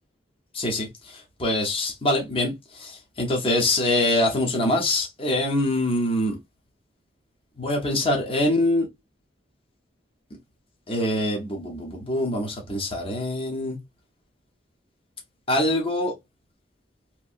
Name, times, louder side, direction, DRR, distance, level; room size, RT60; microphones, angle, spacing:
voice 1, 0.5-6.4 7.6-8.9 10.9-13.8 15.5-16.1, left 1 dB, 30° left, 0.8 m, -24 dB
3.0 x 2.6 x 2.5 m
head